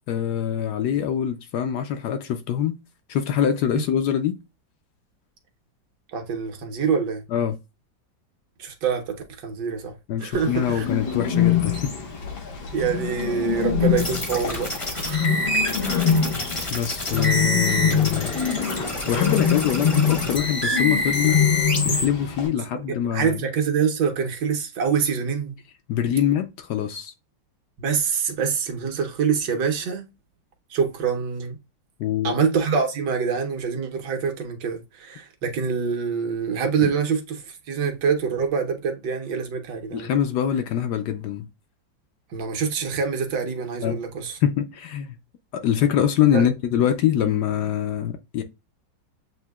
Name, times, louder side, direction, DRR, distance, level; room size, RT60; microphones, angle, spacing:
voice 1, 0.0-2.8 3.1-4.4 7.3-7.6 10.1-11.9 16.7-18.3 19.1-21.4 21.8-23.4 25.9-27.1 32.0-32.3 36.8-36.9 39.9-41.5 43.8-44.0 44.4-45.2 45.5-48.4, left 9 dB, 70° left, 1.1 m, -24 dB
voice 2, 6.1-7.2 8.6-10.9 12.7-15.3 15.8-16.1 22.4-25.6 27.8-30.1 30.7-31.6 32.2-40.1 42.3-44.4 46.3-46.5, right 6 dB, 70° right, 1.5 m, -25 dB
Bird, 10.3-22.5, left 7 dB, 90° left, 2.0 m, -25 dB
sound 1, 14.0-22.0, left 1 dB, 25° left, 0.7 m, -27 dB
7.8 x 2.7 x 2.3 m
omnidirectional pair, 2.0 m